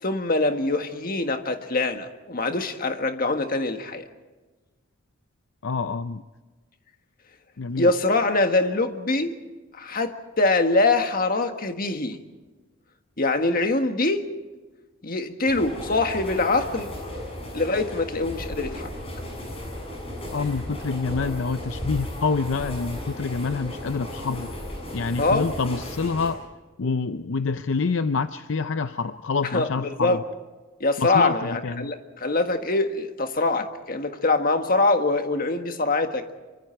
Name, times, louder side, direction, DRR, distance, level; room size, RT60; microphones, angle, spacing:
voice 1, 0.0-4.1 7.8-9.4 9.7-12.2 13.2-14.3 15.0-16.9 17.5-18.9 25.2-25.5 29.4-30.2 30.8-36.2, left 2 dB, 45° left, 6 dB, 1.6 m, -24 dB
voice 2, 5.6-6.2 7.6-7.9 20.3-24.5 24.9-26.4 26.8-30.2 31.0-31.9, left 4 dB, 65° left, 11 dB, 0.6 m, -27 dB
sound 1, 15.5-26.3, left 1 dB, 30° left, 7.5 m, -35 dB
26.5 x 24.5 x 4.5 m, 1.3 s
head